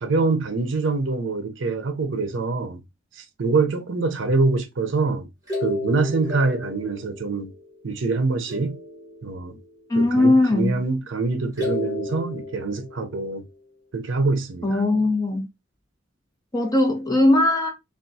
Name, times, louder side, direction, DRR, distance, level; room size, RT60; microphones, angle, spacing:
voice 1, 0.0-2.8 3.1-5.3 5.6-7.5 7.8-8.8 9.2-9.6 10.0-13.5 13.9-14.8, right 3 dB, 70° right, 0.6 m, -24 dB
sound 1, 5.5-8.1 8.5-9.9 11.5-13.5, left 2 dB, 15° right, 1.3 m, -33 dB
voice 2, 9.9-10.7 14.6-15.5 16.5-17.7, left 2 dB, 20° left, 0.8 m, -19 dB
3.5 x 2.3 x 2.6 m
head